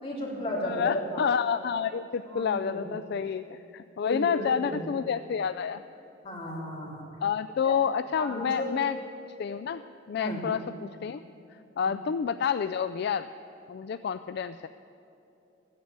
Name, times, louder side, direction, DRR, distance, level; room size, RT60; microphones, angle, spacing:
voice 1, 0.0-1.3 2.3-2.9 4.0-4.8 6.2-7.1 7.6-7.7 8.2-8.7 10.2-10.4 11.8-11.9, left 1 dB, 25° left, -5 dB, 3.7 m, -34 dB
voice 2, 0.6-5.8 7.2-9.0 9.4-9.8 10.1-11.2 11.8-13.3 13.7-14.7, left 7 dB, 55° left, 11 dB, 0.3 m, -29 dB
15.0 x 10.5 x 8.7 m, 2.8 s
head